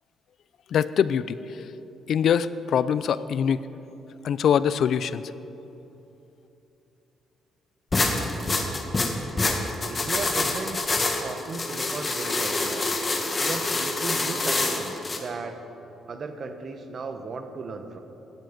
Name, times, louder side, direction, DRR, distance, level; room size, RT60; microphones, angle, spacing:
voice 1, 0.7-1.6 2.1-3.6 4.2-5.2, left 8 dB, 65° left, 16 dB, 0.5 m, -23 dB
sound 1, 7.9-15.2, left 2 dB, 30° left, 1.8 m, -26 dB
voice 2, 9.9-10.8 11.2-12.9 13.4-15.6 16.1-18.0, right 4 dB, 45° right, 7 dB, 1.3 m, -36 dB
17.0 x 12.5 x 5.3 m, 3.0 s
cardioid pair, 90°, 0 cm